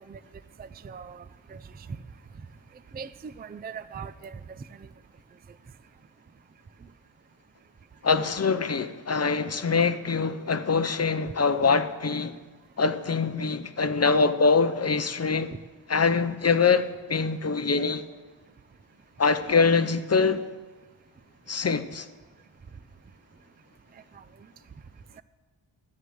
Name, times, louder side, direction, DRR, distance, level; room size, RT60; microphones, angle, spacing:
voice 1, 0.6-1.2 1.5-1.6 2.9-4.9, right 6 dB, 20° right, 0.3 m, -40 dB
voice 2, 8.0-12.4 12.8-15.5 15.9-18.0 19.2-20.4 21.5-22.1, left 4 dB, 30° left, 0.6 m, -24 dB
12.5 x 8.0 x 8.0 m
wide cardioid pair, 100°, 49 cm